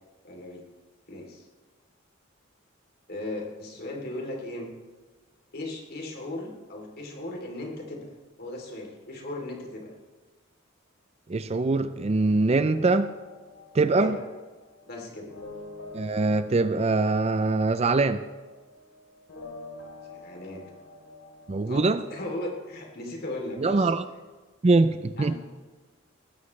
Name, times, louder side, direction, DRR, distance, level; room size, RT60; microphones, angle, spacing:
voice 1, 0.2-0.6 1.1-1.5 3.1-4.7 5.5-8.1 8.4-9.9 14.0-14.3 14.8-15.3 20.1-20.6 21.6-23.9 25.2-25.4, left 1 dB, 50° left, 0 dB, 3.1 m, -37 dB
voice 2, 11.3-13.1 13.7-14.2 15.9-18.2 21.5-22.0 23.6-24.0 24.6-25.4, right 3 dB, 30° right, 12 dB, 0.4 m, -23 dB
sound 1, 12.5-22.6, left 2 dB, 70° left, 3.5 m, -47 dB
20.0 x 14.5 x 3.2 m, 1.3 s
head